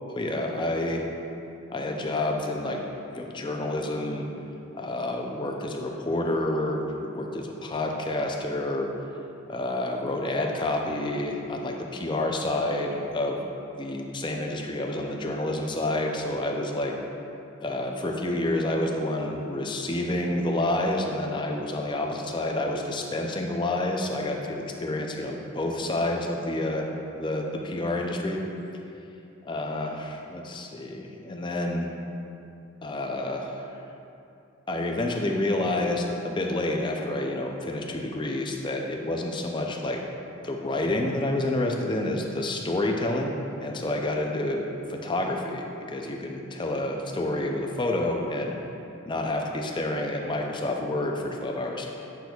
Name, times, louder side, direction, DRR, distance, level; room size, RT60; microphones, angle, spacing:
voice 1, 0.1-1.0 1.7-2.8 3.1-4.3 4.8-8.9 9.5-13.5 13.8-16.9 17.6-28.4 29.4-31.9 32.8-33.6 34.7-40.0 40.4-44.6 44.9-48.5 49.1-51.9, left 1 dB, 20° left, 2 dB, 0.5 m, -29 dB
8.0 x 6.0 x 2.3 m, 2.7 s
head